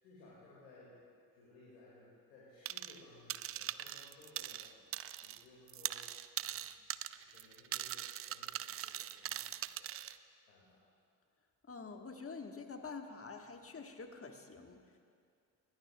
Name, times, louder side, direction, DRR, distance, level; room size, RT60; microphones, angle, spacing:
voice 1, 0.0-1.0 1.3-6.1 6.4-9.9 10.5-10.8, left 2 dB, 85° left, -7 dB, 2.3 m, -61 dB
sound 1, 2.7-3.0 3.3-5.4 5.7-10.2, right 12 dB, 30° right, 0.4 m, -41 dB
voice 2, 11.6-15.0, left 4 dB, 25° left, 5 dB, 1.5 m, -47 dB
21.0 x 17.5 x 2.3 m, 2.3 s
hypercardioid pair, 45°, 49 cm